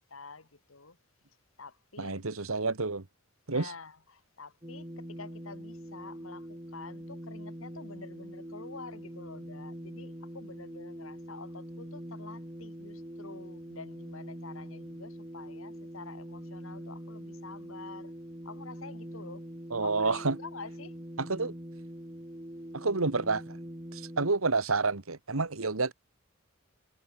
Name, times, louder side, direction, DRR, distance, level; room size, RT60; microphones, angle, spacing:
voice 1, 0.1-1.0 1.6-2.2 3.5-18.1 18.4-19.5 19.8-21.0, left 4 dB, 70° left, 2.4 m, -48 dB
voice 2, 2.0-3.1 3.5-3.7 19.7-20.4 21.2-21.5 22.7-23.6 23.9-25.9, right 3 dB, 80° right, 1.7 m, -29 dB
sound 1, 4.6-24.3, equal, 20° right, 4.8 m, -44 dB
head